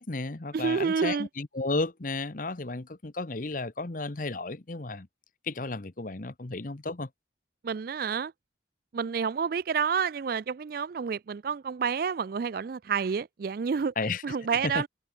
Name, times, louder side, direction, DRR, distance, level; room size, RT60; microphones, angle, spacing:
voice 1, 0.0-5.1 5.4-7.1 14.0-14.2 14.5-14.8, left 3 dB, 45° left, 1.0 m, -33 dB
voice 2, 0.5-1.3 7.6-8.3 8.9-13.9 14.2-14.9, right 6 dB, 55° right, 0.4 m, -29 dB
head